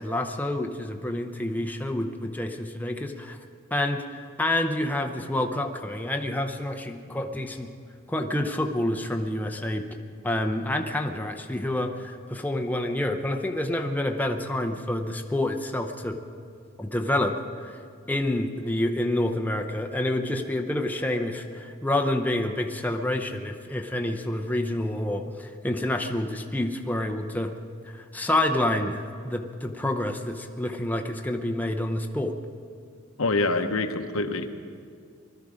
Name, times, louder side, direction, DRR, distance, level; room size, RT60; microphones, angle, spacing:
voice 1, 0.0-3.4 3.7-7.7 8.1-9.9 10.2-16.2 16.8-17.8 18.1-27.5 27.9-32.4, left 1 dB, 10° left, 4 dB, 0.7 m, -28 dB
voice 2, 33.2-34.5, left 3 dB, 80° left, 6 dB, 0.9 m, -25 dB
20.5 x 12.5 x 5.0 m, 2.2 s
head